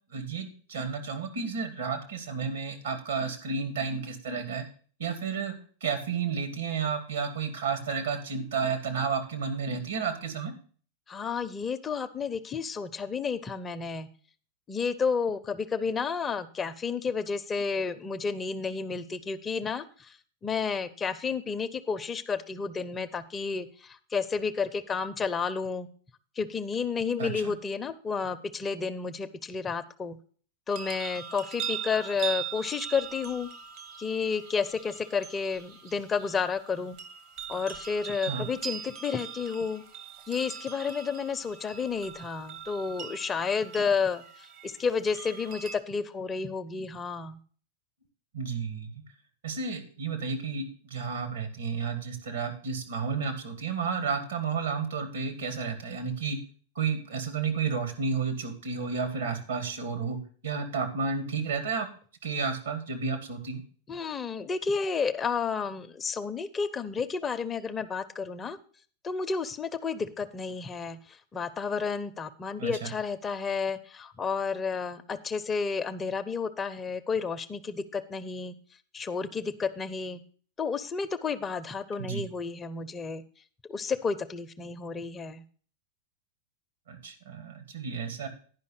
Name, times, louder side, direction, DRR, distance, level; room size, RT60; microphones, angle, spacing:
voice 1, 0.1-4.6 5.0-5.5 5.8-10.5 27.2-27.5 38.3-38.5 43.8-43.9 48.3-49.0 49.4-56.4 56.8-60.2 60.4-61.9 62.2-63.6 72.6-72.9 82.0-82.2 86.9-88.3, right 5 dB, 70° right, 5 dB, 2.1 m, -32 dB
voice 2, 11.1-14.1 14.7-20.2 20.4-25.9 26.4-30.2 30.7-33.5 34.0-37.0 37.5-39.8 40.3-44.2 44.6-47.4 63.9-68.6 69.0-78.5 78.9-80.2 80.6-83.2 83.7-85.4, left 5 dB, 20° left, 11 dB, 0.7 m, -31 dB
sound 1, 30.7-45.8, right 8 dB, 50° right, 1.2 m, -41 dB
10.5 x 5.4 x 6.5 m, 0.44 s
figure-of-eight pair, 95°, 0 cm